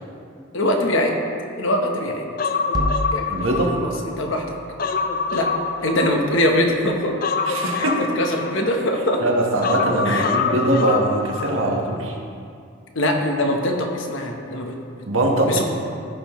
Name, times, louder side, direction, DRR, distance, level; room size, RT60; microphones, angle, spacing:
voice 1, 0.5-1.1 1.6-2.3 3.1-4.4 5.3-5.5 5.8-7.1 7.7-7.9 8.1-9.2 10.0-10.2 12.9-14.8 15.5-15.6, left 1 dB, 65° left, 2 dB, 1.0 m, -22 dB
Human voice, 2.4-4.2 4.5-6.6 7.2-9.0 9.6-11.5 11.8-12.0, left 4 dB, 40° left, 0.4 m, -25 dB
sound 1, 2.7-7.1, equal, 20° right, 0.5 m, -33 dB
voice 2, 3.3-3.8 7.5-8.1 9.2-12.1 15.1-15.6, right 1 dB, 70° right, 0 dB, 1.2 m, -21 dB
14.5 x 5.5 x 3.1 m, 2.4 s
head